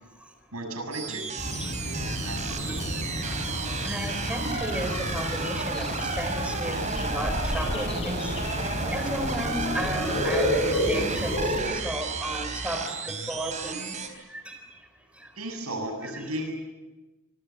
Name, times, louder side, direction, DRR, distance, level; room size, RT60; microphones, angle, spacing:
voice 1, 0.5-1.5 1.8-3.0 15.4-16.5, right 1 dB, 85° right, 4 dB, 7.3 m, -35 dB
sound 1, 0.9-14.1, right 4 dB, 35° right, 3.9 m, -33 dB
sound 2, 1.4-11.6, left 1 dB, 25° left, 6.8 m, -31 dB
voice 2, 3.8-8.3 8.9-13.9 14.3-14.5 15.2-15.3 16.0-16.3, right 1 dB, 5° right, 5 dB, 3.9 m, -34 dB
26.0 x 25.0 x 7.2 m, 1.1 s
head